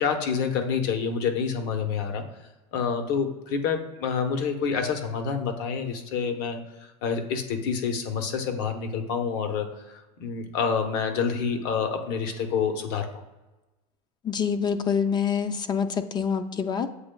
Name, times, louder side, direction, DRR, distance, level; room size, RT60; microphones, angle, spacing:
voice 1, 0.0-2.2 2.7-13.1, left 6 dB, 55° left, 6 dB, 0.8 m, -28 dB
voice 2, 14.2-16.9, left 7 dB, 20° left, 9 dB, 0.4 m, -26 dB
8.0 x 3.0 x 2.2 m, 1.1 s
hypercardioid pair, 105°, 20 cm